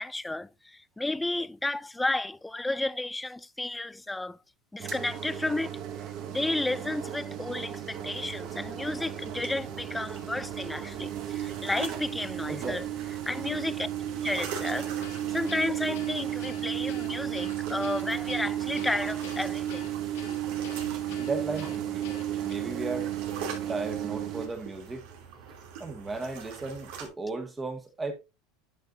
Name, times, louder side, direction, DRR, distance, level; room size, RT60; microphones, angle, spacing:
voice 1, 0.0-4.4 4.7-5.8 6.3-12.9 13.3-13.9 14.2-14.9 15.3-19.9, left 2 dB, 5° left, 0.3 m, -32 dB
sound 1, 4.8-24.5, right 11 dB, 45° right, 1.5 m, -34 dB
sound 2, 7.9-27.1, right 6 dB, 70° right, 2.7 m, -44 dB
voice 2, 12.5-12.8 21.2-22.1 22.4-23.1 23.7-25.1 25.8-28.1, right 3 dB, 15° right, 1.6 m, -35 dB
Guitar, 15.0-22.5, left 10 dB, 80° left, 1.6 m, -47 dB
10.5 x 5.6 x 2.6 m
supercardioid pair, 135°, 0 cm